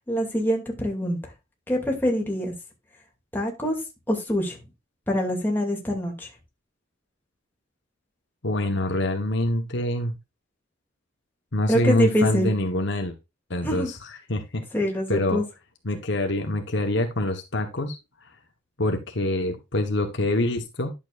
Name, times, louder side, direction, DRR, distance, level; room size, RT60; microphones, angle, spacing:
voice 1, 0.1-1.2 1.7-2.5 3.3-3.8 4.1-4.6 5.1-6.3 11.7-12.5 13.6-13.9 14.7-15.4, equal, 10° left, 2.6 m, -25 dB
voice 2, 8.4-10.1 11.5-13.2 13.5-14.6 15.1-15.4 15.8-18.0 18.2-18.3 18.8-20.9, left 1 dB, 60° left, 1.3 m, -25 dB
11.0 x 7.2 x 2.5 m
head